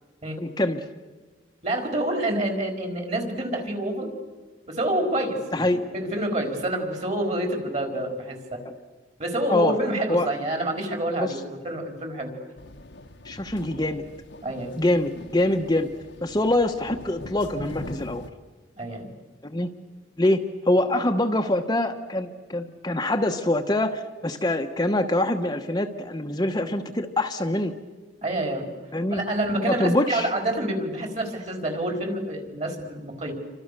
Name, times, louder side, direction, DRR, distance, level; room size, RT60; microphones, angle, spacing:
voice 1, 0.4-0.8 5.5-5.8 9.5-9.8 10.1-10.3 11.2-11.3 13.2-14.0 14.8-15.9 16.2-18.3 19.4-19.7 20.2-27.7 28.9-29.2 29.7-30.3, left 1 dB, 20° left, 4 dB, 1.1 m, -24 dB
voice 2, 1.6-4.1 4.7-5.7 5.9-8.6 9.2-12.3 14.4-14.7 18.8-19.1 28.2-28.7 29.1-33.3, right 1 dB, 40° right, 4 dB, 4.7 m, -27 dB
sound 1, 12.6-18.3, left 1 dB, 65° left, 1.2 m, -42 dB
28.5 x 25.5 x 6.8 m, 1.3 s
head